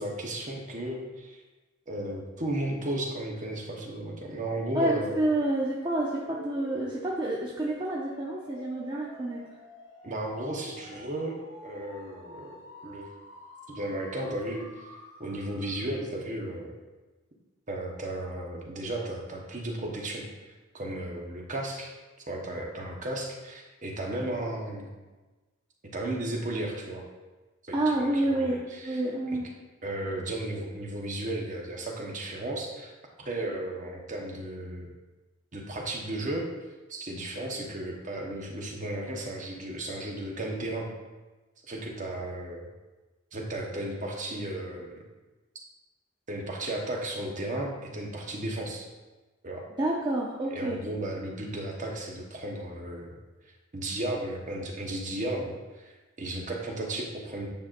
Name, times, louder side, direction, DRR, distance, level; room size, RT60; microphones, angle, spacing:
voice 1, 0.0-1.4 1.9-5.2 10.0-11.4 11.6-12.5 12.8-13.1 13.7-14.9 15.2-16.7 17.7-20.3 20.7-21.9 22.3-24.9 25.9-27.0 27.6-29.0 29.8-32.9 33.2-34.9 35.5-36.5 36.9-40.9 41.7-42.7 43.3-44.9 46.3-48.9 49.4-49.6 50.5-53.1 53.7-57.5, right 1 dB, 35° right, 0 dB, 1.1 m, -34 dB
voice 2, 4.7-9.4 27.7-29.5 49.8-50.8, right 1 dB, 20° right, -4 dB, 0.6 m, -28 dB
sound 1, 6.2-16.1, left 1 dB, 60° left, 1.6 m, -49 dB
9.0 x 5.6 x 2.6 m, 1.2 s
head